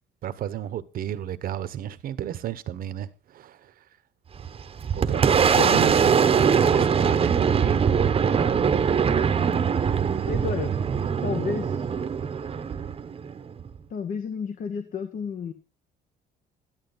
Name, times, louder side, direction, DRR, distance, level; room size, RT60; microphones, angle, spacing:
voice 1, 0.2-3.7 4.9-7.9, right 11 dB, 60° right, 1.1 m, -32 dB
Boom, 4.3-13.8, right 7 dB, 35° right, 1.0 m, -22 dB
voice 2, 10.2-10.7 11.2-11.8 13.9-15.5, left 5 dB, 55° left, 1.3 m, -31 dB
12.5 x 11.0 x 4.0 m
cardioid pair, 110°, 17 cm